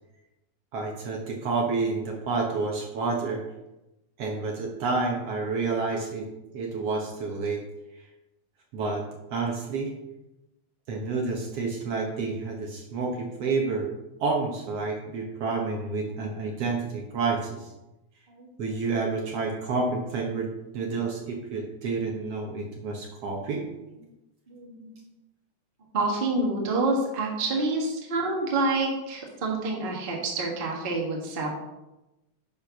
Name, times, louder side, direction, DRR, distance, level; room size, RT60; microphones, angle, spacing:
voice 1, 0.7-3.4 4.2-6.3 6.5-7.6 8.7-9.1 9.3-9.9 10.9-13.9 14.2-17.7 18.6-20.5 20.7-23.6, right 4 dB, 60° right, 0 dB, 1.9 m, -29 dB
voice 2, 24.5-25.0 25.9-31.5, right 2 dB, 25° right, -1 dB, 1.2 m, -28 dB
9.7 x 4.4 x 5.9 m, 0.97 s
omnidirectional pair, 3.4 m